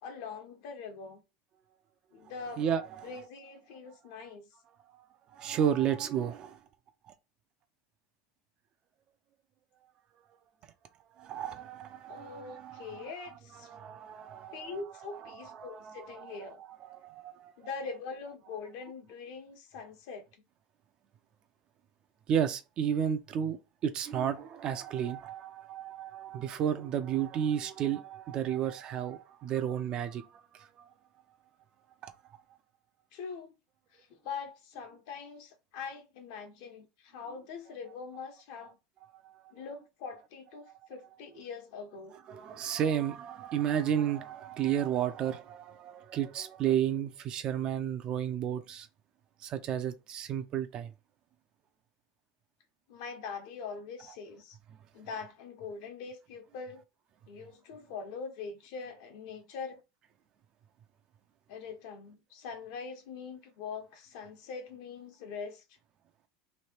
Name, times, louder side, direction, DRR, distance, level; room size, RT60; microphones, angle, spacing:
voice 1, 0.0-1.2 2.1-2.7 3.0-4.5 12.1-13.7 14.5-16.6 17.6-20.2 33.1-33.5 33.9-38.8 39.5-42.1 52.9-54.6 54.9-56.8 57.3-59.8 61.5-65.6, left 5 dB, 65° left, 1.2 m, -43 dB
voice 2, 2.5-3.1 5.3-6.6 11.2-13.2 13.7-14.8 15.1-17.5 22.3-23.6 23.8-30.3 30.6-30.9 32.0-32.1 39.1-39.4 42.3-48.9 49.4-50.9, right 9 dB, 35° right, 0.5 m, -32 dB
3.2 x 2.7 x 4.4 m
supercardioid pair, 150°, 2 cm